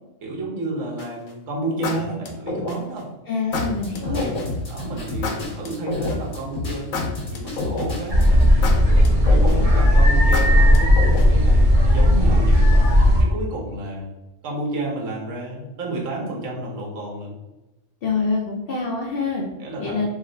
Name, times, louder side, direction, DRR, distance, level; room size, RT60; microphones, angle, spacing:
voice 1, 0.2-3.1 3.9-4.4 4.7-6.9 7.3-8.5 8.9-12.8 13.2-14.1 14.4-17.4 19.6-20.1, right 2 dB, 70° right, -2 dB, 1.2 m, -30 dB
sound 1, 1.0-1.3 1.8-3.0 3.5-4.5 5.2-6.4 6.9-8.1 8.6-9.8 10.3-11.5, left 3 dB, 85° left, 1.0 m, -29 dB
voice 2, 3.3-4.3 18.0-19.5 19.8-20.0, left 4 dB, 60° left, -2 dB, 0.6 m, -25 dB
sound 2, 3.5-8.5, left 2 dB, 45° left, 1.2 m, -30 dB
sound 3, 8.1-13.2, left 1 dB, 40° right, 0.9 m, -15 dB
3.0 x 2.1 x 3.7 m, 1.0 s
omnidirectional pair, 1.4 m